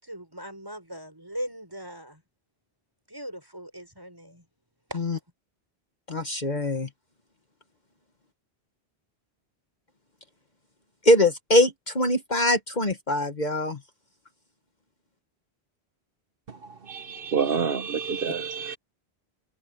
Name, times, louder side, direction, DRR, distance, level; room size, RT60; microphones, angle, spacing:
voice 1, 0.0-2.2 3.1-4.4 4.9-5.0, equal, 20° right, 5.9 m, -39 dB
voice 2, 6.1-6.9 11.0-13.8, left 1 dB, 45° left, 1.6 m, -23 dB
voice 3, 16.9-18.8, right 6 dB, 60° right, 1.1 m, -28 dB
omnidirectional pair, 1.1 m